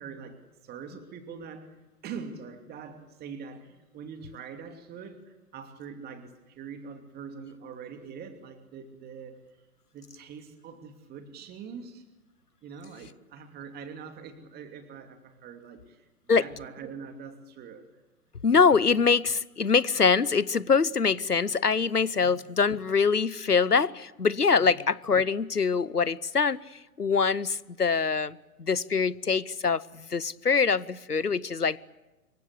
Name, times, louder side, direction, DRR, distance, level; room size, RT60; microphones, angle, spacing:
voice 1, 0.0-1.8 2.0-9.4 9.9-12.0 12.6-17.9 22.2-22.3 24.6-24.8, right 6 dB, 20° right, 7 dB, 2.8 m, -43 dB
voice 2, 18.4-26.6 27.0-31.8, left 5 dB, 90° left, 21 dB, 1.0 m, -24 dB
26.5 x 23.5 x 8.4 m, 1.0 s
figure-of-eight pair, 115°, 45 cm